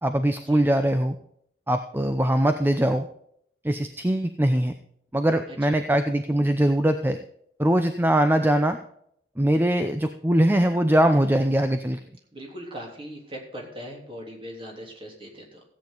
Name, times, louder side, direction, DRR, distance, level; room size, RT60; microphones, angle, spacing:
voice 1, 0.0-1.2 1.7-3.1 3.6-4.7 5.1-7.2 7.6-8.8 9.4-12.0, right 1 dB, 10° right, 8 dB, 0.6 m, -22 dB
voice 2, 12.3-15.6, equal, 30° right, -1 dB, 3.4 m, -40 dB
15.5 x 8.7 x 3.9 m, 0.68 s
head